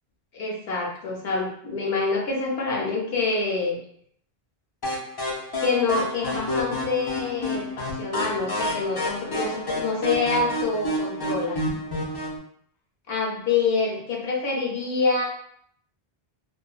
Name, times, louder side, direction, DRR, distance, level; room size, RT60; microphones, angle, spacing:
voice 1, 0.3-3.8 5.6-11.8 13.1-15.2, left 4 dB, 75° left, -2 dB, 0.9 m, -26 dB
sound 1, 4.8-12.4, left 1 dB, 40° left, 0.3 m, -29 dB
2.5 x 2.2 x 2.3 m, 0.67 s
omnidirectional pair, 1.1 m